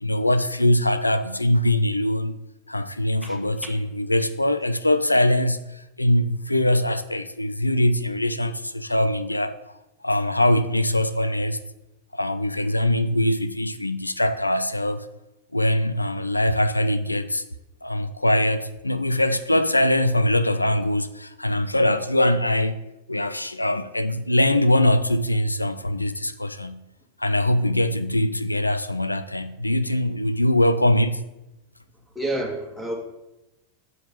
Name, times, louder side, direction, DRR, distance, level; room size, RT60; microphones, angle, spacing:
voice 1, 0.0-2.4 2.7-9.6 10.0-11.6 12.1-15.1 15.5-17.4 17.8-22.8 23.1-26.8 27.2-31.2, left 1 dB, 85° left, 0.4 m, -22 dB
voice 2, 32.2-32.9, right 1 dB, ahead, 1.9 m, -29 dB
6.4 x 5.2 x 6.8 m
figure-of-eight pair, 90°, 0 cm